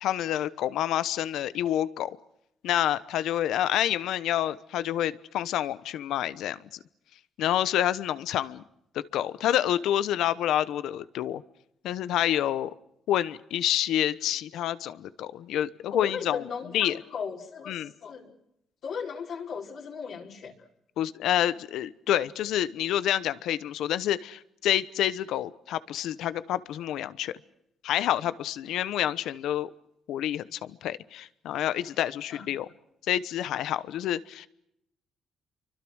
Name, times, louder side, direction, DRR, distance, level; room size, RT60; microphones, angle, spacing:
voice 1, 0.0-2.2 2.6-6.8 7.4-8.6 8.9-11.4 11.8-12.7 13.1-16.5 16.7-17.0 17.7-17.9 21.0-27.3 27.8-29.7 30.1-32.7 33.1-34.5, left 11 dB, 85° left, 15 dB, 1.0 m, -28 dB
voice 2, 15.9-18.3 18.8-20.5 32.3-32.4, left 6 dB, 65° left, -1 dB, 4.7 m, -36 dB
29.5 x 24.5 x 6.4 m, 0.80 s
cardioid pair, 90°, 0 cm